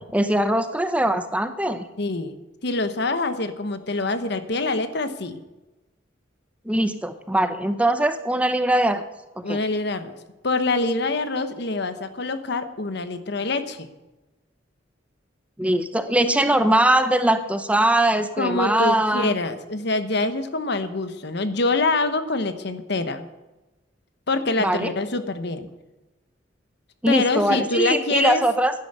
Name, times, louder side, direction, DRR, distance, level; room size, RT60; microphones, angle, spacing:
voice 1, 0.1-1.9 6.7-9.0 9.4-9.6 15.6-19.3 24.6-24.9 27.0-28.7, right 1 dB, 5° right, 10 dB, 0.7 m, -21 dB
voice 2, 2.0-2.3 2.6-5.4 9.4-10.1 10.4-13.9 18.4-23.2 24.3-25.7 27.1-28.4, left 3 dB, 60° left, 10 dB, 1.1 m, -25 dB
11.0 x 10.5 x 8.1 m, 1.1 s
head